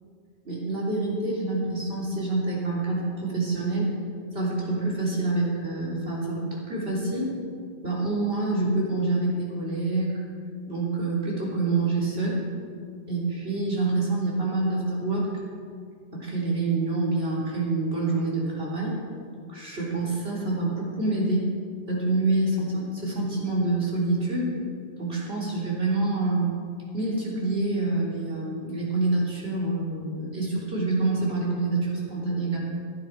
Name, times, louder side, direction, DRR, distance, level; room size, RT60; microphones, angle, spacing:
voice 1, 0.4-3.9 4.3-7.3 7.8-10.2 10.7-12.4 13.1-15.3 16.1-19.0 19.5-21.5 21.9-24.5 25.0-26.5 26.9-32.6, right 2 dB, 70° right, -5 dB, 3.6 m, -27 dB
16.0 x 10.5 x 4.6 m, 2.2 s
omnidirectional pair, 1.1 m